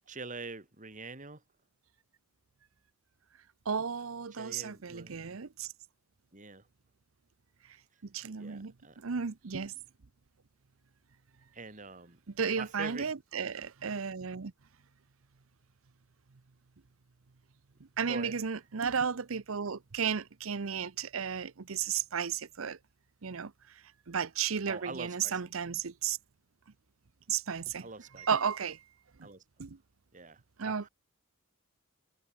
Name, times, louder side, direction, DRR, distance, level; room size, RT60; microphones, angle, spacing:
voice 1, 0.1-1.4 4.3-5.4 6.3-6.7 8.4-9.0 11.5-12.2 12.5-13.1 18.1-18.4 24.6-25.5 27.8-28.3 29.2-29.4 30.1-30.9, right 3 dB, 40° right, 3.1 m, -44 dB
voice 2, 3.7-5.7 8.1-8.7 9.0-9.7 12.4-14.5 18.0-22.8 23.2-23.5 24.1-26.2 27.3-27.9 28.2-28.8 29.6-29.8 30.6-30.9, right 6 dB, 80° right, 0.8 m, -33 dB
head